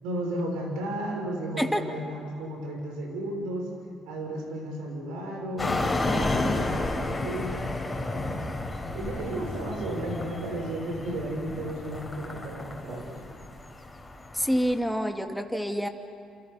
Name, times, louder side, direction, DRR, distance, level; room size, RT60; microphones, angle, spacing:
voice 1, 0.0-3.7 4.0-8.4 8.9-13.2, right 1 dB, 80° right, 1 dB, 6.8 m, -34 dB
sound 1, 5.6-14.8, left 2 dB, 15° left, 4.9 m, -31 dB
voice 2, 14.3-15.9, equal, ahead, 4 dB, 2.6 m, -27 dB
29.0 x 28.0 x 5.7 m, 2.5 s
supercardioid pair, 60°, 0 cm